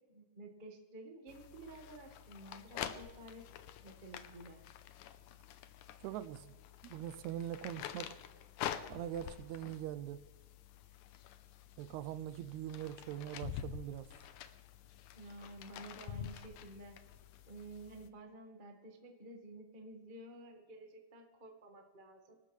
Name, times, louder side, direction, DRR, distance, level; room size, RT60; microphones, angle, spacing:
voice 1, 0.1-3.4 3.8-4.6 15.1-17.0 17.5-22.3, right 1 dB, 35° right, 0.7 m, -52 dB
sound 1, 1.3-18.1, left 10 dB, 75° left, 2.1 m, -48 dB
voice 2, 6.0-6.5 6.8-8.2 8.9-10.2 11.8-14.1, right 11 dB, 80° right, 1.7 m, -42 dB
26.0 x 12.5 x 3.3 m
omnidirectional pair, 3.9 m